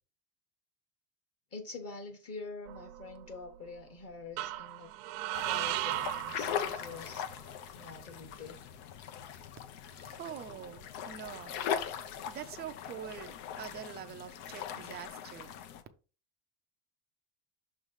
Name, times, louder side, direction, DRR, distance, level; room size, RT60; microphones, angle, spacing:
voice 1, 1.5-4.9 5.4-7.3 7.7-8.6, left 3 dB, 30° left, 1.1 m, -46 dB
sound 1, 2.7-3.5 4.4-7.2, right 15 dB, 80° right, 0.7 m, -36 dB
sound 2, 5.3-15.8, left 9 dB, 75° left, 1.0 m, -40 dB
voice 2, 9.7-11.6 11.9-12.0 12.3-15.5, right 9 dB, 25° right, 0.4 m, -45 dB
6.4 x 3.1 x 5.2 m
cardioid pair, 160°, 49 cm